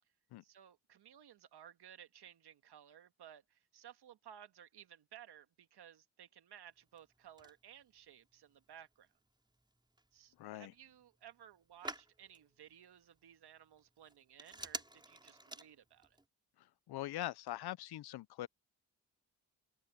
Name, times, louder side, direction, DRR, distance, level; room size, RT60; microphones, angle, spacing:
voice 1, 0.4-9.1 10.1-16.2, right 10 dB, 70° right, 1.7 m, -58 dB
Telephone, 6.7-16.2, right 1 dB, 10° right, 3.7 m, -53 dB
voice 2, 10.4-10.7 16.6-18.5, left 15 dB, 65° left, 0.6 m, -43 dB
cardioid pair, 65°, 41 cm